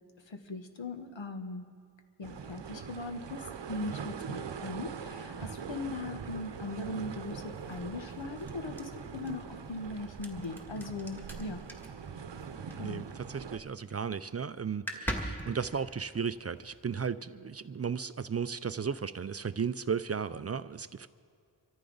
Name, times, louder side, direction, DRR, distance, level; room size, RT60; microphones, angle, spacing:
voice 1, 0.3-1.7 2.2-11.6 12.8-13.1, left 2 dB, 90° left, 7 dB, 1.2 m, -39 dB
sound 1, 2.2-13.6, right 6 dB, 75° right, 0.8 m, -42 dB
sound 2, 5.7-13.4 13.7-14.1 14.4-14.5 14.7-17.1, equal, 5° left, 1.9 m, -43 dB
voice 2, 12.8-21.1, right 6 dB, 35° right, 14 dB, 0.4 m, -35 dB
25.5 x 14.0 x 3.9 m, 2.3 s
wide cardioid pair, 80°, 44 cm